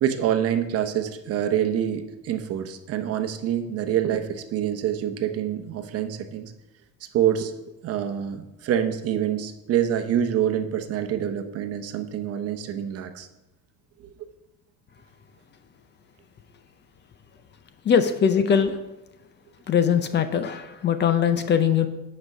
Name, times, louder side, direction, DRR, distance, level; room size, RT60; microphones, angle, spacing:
voice 1, 0.0-6.5 7.1-7.5 7.8-13.3, right 10 dB, 50° right, 8 dB, 0.9 m, -26 dB
voice 2, 17.9-18.7 19.7-21.9, left 7 dB, 35° left, 10 dB, 0.6 m, -21 dB
8.6 x 5.3 x 5.4 m, 0.97 s
cardioid pair, 135°, 31 cm